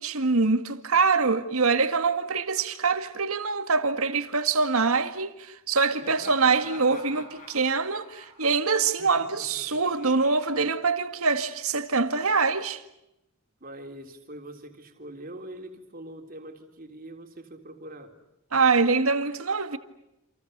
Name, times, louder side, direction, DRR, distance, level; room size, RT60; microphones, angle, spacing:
voice 1, 0.0-12.8 18.5-19.8, right 4 dB, 85° right, 2.0 m, -24 dB
Laughter, 6.0-11.4, left 2 dB, 35° left, 6.9 m, -48 dB
voice 2, 13.6-18.2, right 1 dB, 40° right, 3.6 m, -43 dB
29.5 x 28.0 x 6.8 m
head